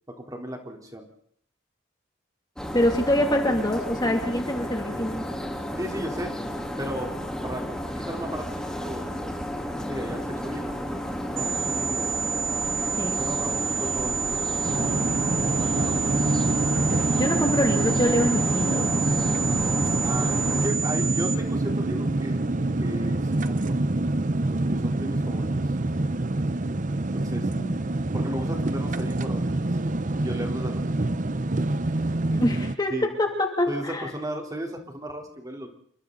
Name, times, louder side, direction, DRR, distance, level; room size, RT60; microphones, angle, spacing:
voice 1, 0.1-1.1 5.8-6.3 6.8-9.1 9.8-10.7 11.3-12.1 13.2-15.3 15.6-16.0 20.0-22.4 22.8-23.8 24.5-25.5 27.0-27.6 28.1-29.5 29.8-29.9 30.2-31.0 32.9-33.1 33.7-33.8 34.1-35.7, equal, 20° right, 2 dB, 3.7 m, -35 dB
sound 1, 2.6-20.7, equal, 5° left, 3.5 m, -32 dB
voice 2, 2.7-5.2 13.0-13.2 17.1-18.9 27.3-27.8 32.3-32.9 33.2-34.1, left 1 dB, 20° left, 2 dB, 2.7 m, -25 dB
sound 2, 11.4-21.4, right 7 dB, 75° right, 1.9 m, -29 dB
sound 3, 14.6-32.8, right 2 dB, 40° right, 0.8 m, -26 dB
28.5 x 24.5 x 4.0 m, 0.62 s
head